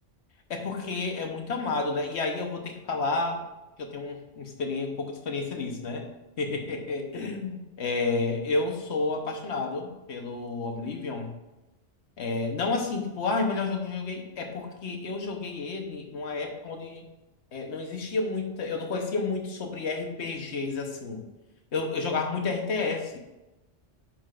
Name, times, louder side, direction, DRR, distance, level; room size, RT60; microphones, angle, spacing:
voice 1, 0.5-3.4 3.8-6.1 6.4-11.3 12.2-17.0 17.5-21.2 21.7-23.2, left 3 dB, 70° left, 3 dB, 1.3 m, -30 dB
9.9 x 5.8 x 2.4 m, 1.0 s
omnidirectional pair, 1.2 m